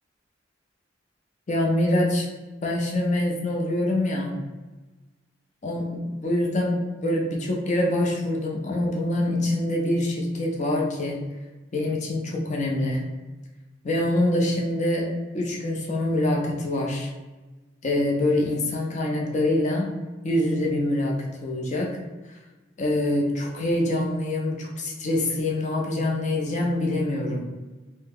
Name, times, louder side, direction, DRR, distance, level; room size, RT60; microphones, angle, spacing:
voice 1, 1.5-2.3 2.6-4.3 5.6-11.2 11.7-13.0 13.8-15.1 15.3-17.1 17.8-19.9 20.2-21.2 21.4-22.0 22.8-27.5, left 1 dB, 40° left, -1 dB, 0.5 m, -25 dB
2.8 x 2.1 x 3.5 m, 1.2 s
head